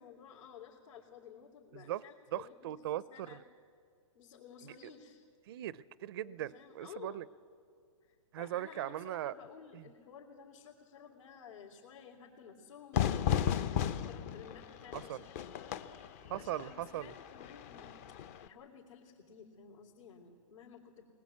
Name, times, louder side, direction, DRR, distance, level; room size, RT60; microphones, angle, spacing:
voice 1, 0.0-2.8 3.1-3.4 4.1-5.2 6.2-7.3 8.1-15.9 16.4-21.1, left 7 dB, 75° left, -3 dB, 3.6 m, -54 dB
voice 2, 2.3-3.4 4.6-4.7 5.5-7.3 8.3-9.3 9.7-9.8 14.9-15.2 16.3-17.1, right 13 dB, 45° right, 18 dB, 0.5 m, -39 dB
Fire / Fireworks, 12.9-18.5, left 9 dB, 30° left, 0.6 m, -35 dB
22.0 x 20.0 x 8.4 m, 2.3 s
hypercardioid pair, 160°, 17 cm